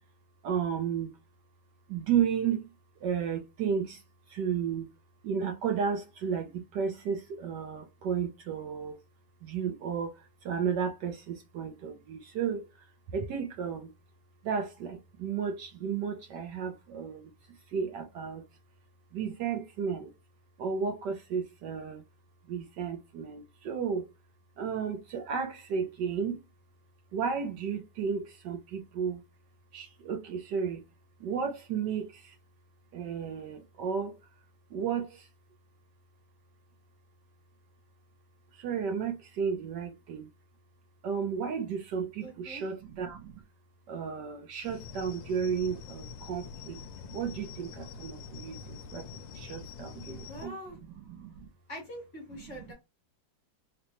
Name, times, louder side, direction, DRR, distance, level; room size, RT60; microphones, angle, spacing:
voice 1, 0.4-1.1 1.9-2.7 3.0-4.0 4.3-4.9 5.2-9.0 9.4-12.7 13.1-13.9 14.4-17.3 17.7-18.4 19.1-20.1 20.6-22.0 22.5-24.1 24.6-26.4 27.1-29.2 29.7-30.8 31.2-32.3 32.9-34.2 34.7-35.3 38.5-40.3 41.0-43.4 43.9-46.8 47.1-50.5 51.1-51.5, right 7 dB, 70° right, 1.2 m, -33 dB
voice 2, 42.2-42.7 50.1-50.8 51.7-52.7, equal, 45° left, 1.5 m, -44 dB
sound 1, 44.6-50.5, left 5 dB, 75° left, 1.3 m, -45 dB
3.9 x 2.2 x 2.9 m
omnidirectional pair, 2.1 m